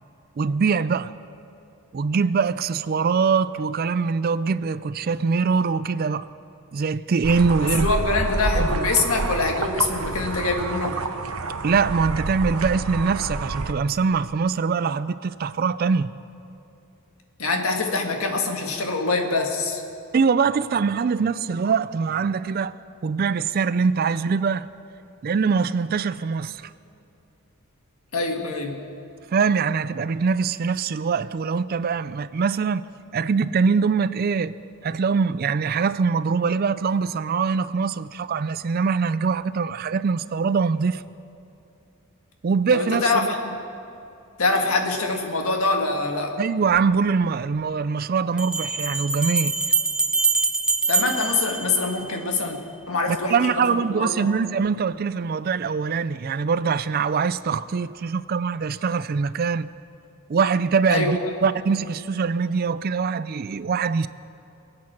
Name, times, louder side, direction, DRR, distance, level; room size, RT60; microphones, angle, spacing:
voice 1, 0.4-1.1 1.9-6.3 6.7-7.9 8.5-8.9 11.6-16.1 20.1-22.7 23.0-24.7 25.2-26.7 29.3-32.8 33.1-34.6 34.8-41.0 42.4-43.3 46.4-49.6 53.1-59.7 60.3-64.1, right 5 dB, 45° right, 0.3 m, -23 dB
sound 1, 7.2-13.7, right 3 dB, 75° right, 0.8 m, -28 dB
voice 2, 7.6-11.0 17.4-19.8 28.1-28.8 42.7-43.5 44.4-46.4 50.9-54.3 60.9-61.3, left 3 dB, 75° left, 1.7 m, -24 dB
Bell, 46.7-46.8 48.4-52.3, right 3 dB, 5° right, 0.6 m, -24 dB
23.0 x 8.7 x 6.0 m
head